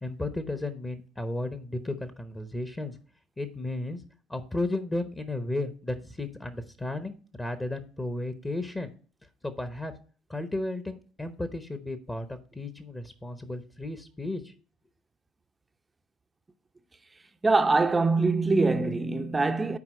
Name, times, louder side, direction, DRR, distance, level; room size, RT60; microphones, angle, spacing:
voice 1, 0.0-3.0 3.4-4.0 4.3-8.9 9.4-9.9 10.3-14.5, left 2 dB, 15° left, 0.9 m, -34 dB
voice 2, 17.4-19.8, right 3 dB, 20° right, 0.6 m, -23 dB
9.8 x 4.6 x 4.3 m
hypercardioid pair, 65°, 0 cm